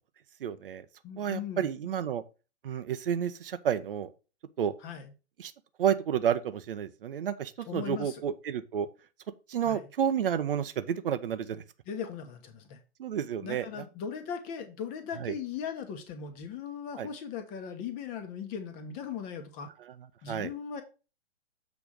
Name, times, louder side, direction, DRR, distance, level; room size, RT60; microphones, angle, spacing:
voice 1, 0.4-0.8 1.2-2.2 2.6-4.1 4.6-4.7 5.4-5.5 5.8-8.9 9.5-11.6 13.0-13.8 15.2-15.3 17.0-17.1 19.8-19.9 20.3-20.5, right 9 dB, 55° right, 0.8 m, -30 dB
voice 2, 1.0-1.9 4.8-5.1 7.7-8.2 9.6-9.9 11.9-12.8 13.4-19.7 20.2-20.8, left 7 dB, 25° left, 1.1 m, -38 dB
7.2 x 3.5 x 6.1 m
figure-of-eight pair, 115°, 33 cm